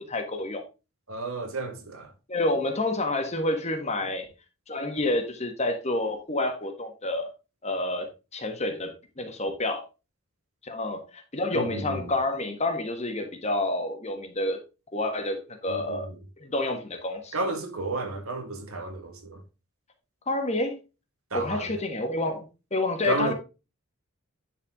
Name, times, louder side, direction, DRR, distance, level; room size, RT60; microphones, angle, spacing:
voice 1, 0.1-0.6 2.3-4.3 4.7-7.3 7.6-9.8 10.6-14.6 14.9-16.1 16.4-17.3 20.3-20.7 21.3-23.3, left 2 dB, 30° left, 1.5 m, -29 dB
voice 2, 1.1-2.1 11.5-12.1 15.7-16.2 17.3-19.4 21.3-21.7 23.0-23.3, right 2 dB, 75° right, 1.8 m, -32 dB
10.0 x 4.7 x 3.6 m
head